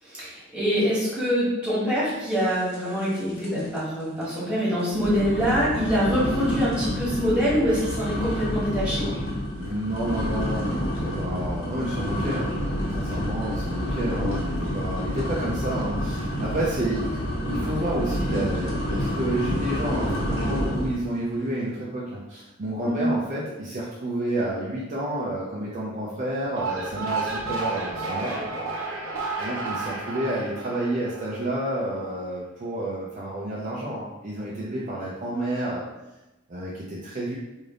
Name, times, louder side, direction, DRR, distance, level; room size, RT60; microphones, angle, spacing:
voice 1, 0.0-9.0 22.8-23.1, equal, 5° right, -9 dB, 1.5 m, -25 dB
sound 1, 2.7-3.1 3.4-3.8 4.2-4.3 4.9-21.0, equal, 70° left, 1.3 m, -29 dB
voice 2, 9.6-12.5 12.9-28.5 29.4-35.8 36.5-37.4, right 1 dB, 35° right, -6 dB, 0.5 m, -30 dB
sound 2, 26.4-31.8, right 3 dB, 85° right, 0.8 m, -31 dB
3.3 x 2.6 x 3.7 m, 1.0 s
head